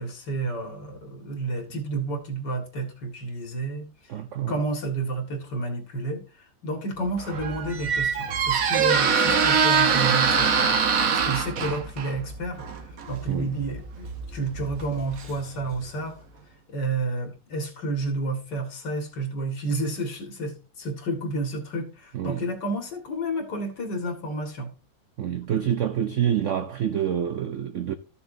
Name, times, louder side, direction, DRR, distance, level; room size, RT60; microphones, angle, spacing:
voice 1, 0.0-3.9 4.5-10.8 11.0-12.7 13.1-16.2 16.7-24.7, right 2 dB, 70° left, 2.6 m, -30 dB
voice 2, 4.1-4.6 11.6-11.7 13.3-13.6 22.1-22.5 25.2-27.9, right 9 dB, 75° right, 0.7 m, -27 dB
Squeak, 7.1-15.8, right 6 dB, 55° right, 1.4 m, -24 dB
13.5 x 7.1 x 2.7 m
omnidirectional pair, 2.0 m